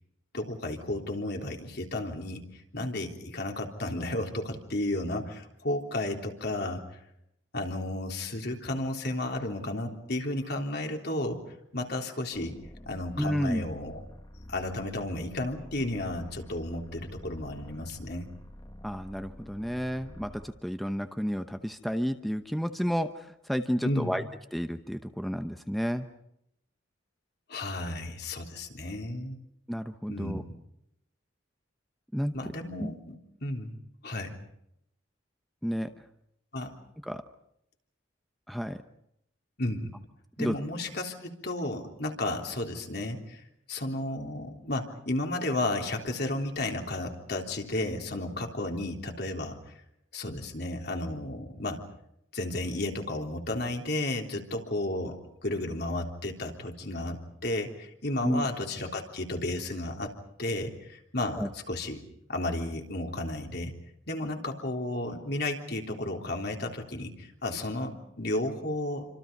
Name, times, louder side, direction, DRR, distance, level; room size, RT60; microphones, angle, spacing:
voice 1, 0.3-6.8 7.5-11.4 11.7-12.6 12.9-14.0 14.5-18.3 23.8-24.2 27.5-29.4 30.1-30.4 32.3-33.7 34.0-34.3 36.5-36.7 39.6-39.9 40.4-43.4 43.7-49.6 50.1-51.8 52.3-60.1 60.4-62.0 62.3-63.7 64.1-69.1, left 1 dB, 60° left, 3 dB, 3.5 m, -33 dB
sound 1, 12.3-20.6, left 1 dB, 20° left, 1.7 m, -48 dB
voice 2, 13.2-13.6 18.8-24.2 24.5-26.1 29.7-30.4 32.1-32.3 32.8-32.9 35.6-35.9 37.1-37.2 38.5-38.8 40.4-40.6 58.2-58.5 61.3-61.5, equal, ahead, 7 dB, 0.9 m, -31 dB
28.0 x 26.0 x 5.4 m, 0.77 s
head